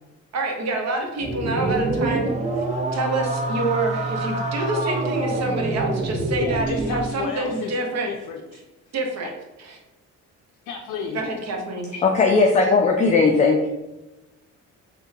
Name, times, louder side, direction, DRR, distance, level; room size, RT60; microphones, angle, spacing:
voice 1, 0.3-2.3 2.9-8.1 8.9-9.3 9.6-9.8 11.1-12.0, right 2 dB, 60° right, 2 dB, 0.8 m, -27 dB
sound 1, 1.2-7.1, right 2 dB, 25° right, 0.6 m, -26 dB
voice 2, 6.4-8.6 9.2-9.3 10.7-11.2, left 5 dB, 85° left, 1 dB, 0.5 m, -32 dB
voice 3, 12.0-13.7, left 4 dB, 25° left, 1 dB, 0.3 m, -17 dB
3.6 x 2.2 x 2.7 m, 1.0 s
cardioid pair, 90°, 30 cm